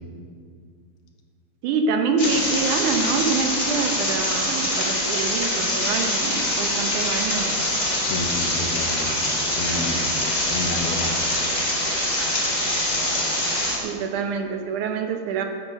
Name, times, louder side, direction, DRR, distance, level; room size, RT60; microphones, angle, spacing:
voice 1, 1.6-7.5 13.8-15.4, right 5 dB, 75° right, 5 dB, 1.9 m, -26 dB
sound 1, 2.2-13.8, left 1 dB, 20° left, 1.0 m, -24 dB
voice 2, 8.0-9.2 9.5-10.1 10.5-11.3, left 2 dB, 90° left, 3 dB, 3.3 m, -30 dB
11.5 x 9.6 x 6.4 m, 2.1 s
omnidirectional pair, 4.4 m